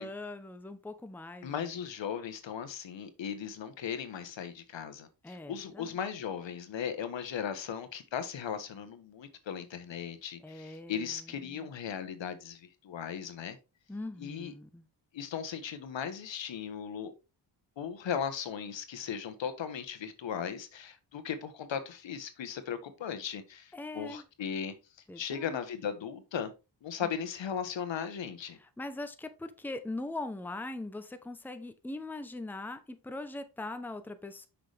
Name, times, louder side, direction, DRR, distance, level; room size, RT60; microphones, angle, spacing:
voice 1, 0.0-1.8 5.2-5.9 10.4-11.7 13.9-14.9 23.7-24.2 25.1-25.6 27.0-27.1 28.6-34.5, left 2 dB, 5° left, 0.8 m, -41 dB
voice 2, 1.4-13.6 14.2-14.5 15.1-17.1 17.8-24.7 25.2-26.5 26.8-28.6, left 7 dB, 80° left, 1.2 m, -37 dB
6.5 x 5.9 x 3.4 m
cardioid pair, 95°, 45 cm